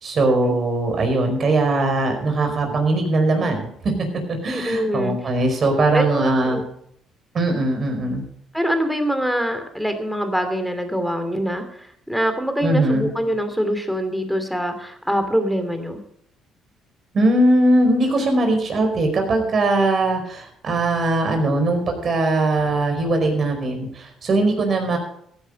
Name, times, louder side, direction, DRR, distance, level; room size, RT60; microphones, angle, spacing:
voice 1, 0.0-3.9 4.3-6.6 7.3-8.2 12.6-13.1 17.1-25.0, right 2 dB, 45° right, 4 dB, 5.0 m, -20 dB
voice 2, 4.5-5.1 5.8-6.7 8.5-16.0, equal, ahead, 7 dB, 2.7 m, -24 dB
15.0 x 10.0 x 5.2 m, 0.71 s
cardioid pair, 90°, 0 cm